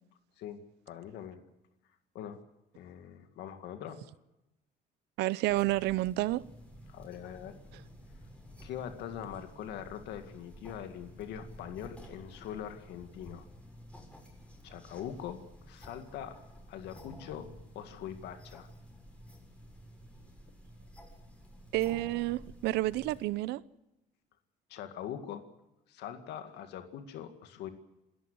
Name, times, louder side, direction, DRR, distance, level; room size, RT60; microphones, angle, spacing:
voice 1, 0.4-1.4 2.1-2.4 2.8-4.0 6.9-7.5 8.6-13.5 14.6-16.4 16.7-18.7 24.7-25.4 25.9-27.7, left 9 dB, 80° left, 2.1 m, -42 dB
voice 2, 5.2-6.4 21.7-23.6, right 17 dB, 85° right, 0.7 m, -30 dB
sound 1, 5.5-23.2, equal, 5° left, 7.2 m, -52 dB
27.5 x 13.5 x 8.0 m
cardioid pair, 110°, 17 cm